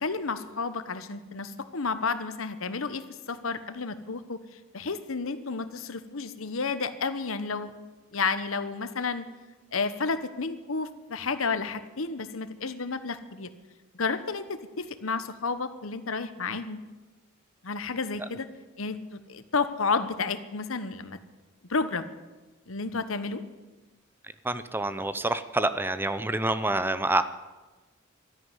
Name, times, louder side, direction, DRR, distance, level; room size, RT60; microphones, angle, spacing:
voice 1, 0.0-4.4 4.7-7.7 8.1-9.3 9.7-13.5 13.9-16.8 17.6-18.5 18.8-21.2 21.7-22.1 22.7-23.4, left 4 dB, 80° left, 12 dB, 1.1 m, -31 dB
voice 2, 24.4-27.2, right 2 dB, 10° right, 12 dB, 0.6 m, -27 dB
13.0 x 10.5 x 9.8 m, 1.2 s
head